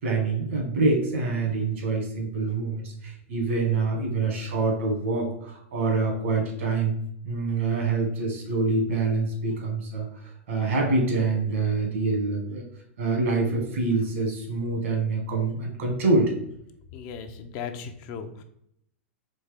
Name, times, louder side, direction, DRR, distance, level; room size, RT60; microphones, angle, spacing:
voice 1, 0.0-6.9 7.2-12.6 13.0-16.3, right 3 dB, 75° right, 2 dB, 1.7 m, -26 dB
voice 2, 16.9-18.4, left 6 dB, 45° left, 8 dB, 0.6 m, -37 dB
4.3 x 3.2 x 3.5 m, 0.72 s
hypercardioid pair, 110°, 7 cm